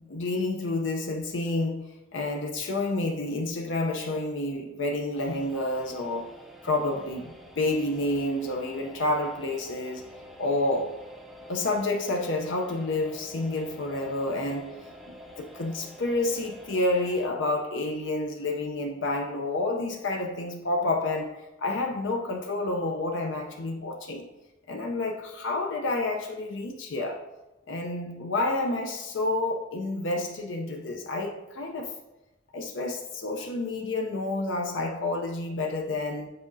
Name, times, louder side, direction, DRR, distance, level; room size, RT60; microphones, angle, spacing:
voice 1, 0.0-10.0 10.4-11.0 11.5-14.7 15.4-24.3 24.7-27.2 27.7-31.9 32.5-36.3, left 2 dB, 65° left, 0.6 m, -29 dB
sound 1, 5.2-17.3, equal, ahead, 0.5 m, -48 dB
7.6 x 4.8 x 2.6 m
head